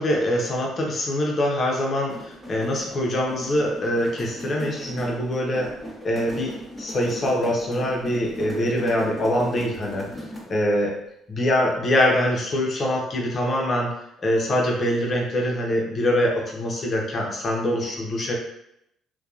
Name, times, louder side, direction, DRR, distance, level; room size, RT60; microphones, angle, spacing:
voice 1, 0.0-5.7 6.0-10.1 10.5-11.0 11.3-13.9 14.2-18.3, left 1 dB, 40° left, -1 dB, 0.7 m, -24 dB
sound 1, 1.9-10.6, equal, 5° right, 1.0 m, -38 dB
2.8 x 2.2 x 2.4 m, 0.79 s
cardioid pair, 90°, 0 cm